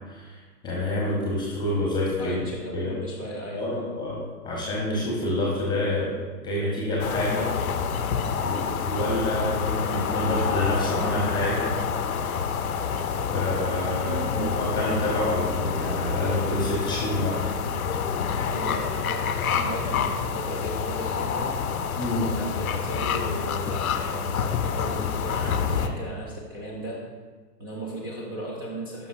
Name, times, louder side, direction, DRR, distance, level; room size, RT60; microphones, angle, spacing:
voice 1, 0.1-0.4 0.6-2.4 2.7-2.9 3.5-6.1 6.4-7.5 8.4-11.7 13.3-17.4 22.0-22.3, left 1 dB, 10° left, -4 dB, 1.0 m, -27 dB
voice 2, 2.2-3.8 14.0-14.6 18.4-21.5 22.2-27.0 27.6-29.1, right 1 dB, 15° right, -4 dB, 0.4 m, -36 dB
sound 1, 7.0-25.9, left 6 dB, 60° left, 0.7 m, -28 dB
12.0 x 5.4 x 2.6 m, 1.4 s
figure-of-eight pair, 120°, 48 cm